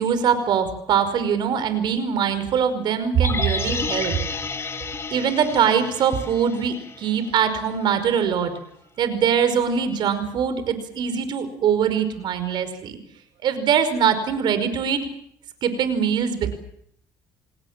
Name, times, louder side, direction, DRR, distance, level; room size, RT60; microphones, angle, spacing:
voice 1, 0.0-4.2 5.1-8.5 9.0-13.0 13.4-15.0 15.6-16.5, right 7 dB, 65° right, 11 dB, 5.2 m, -22 dB
sound 1, 3.2-7.4 7.7-7.8, left 4 dB, 30° left, 3.5 m, -31 dB
29.0 x 19.5 x 7.5 m, 0.71 s
supercardioid pair, 80°, 8 cm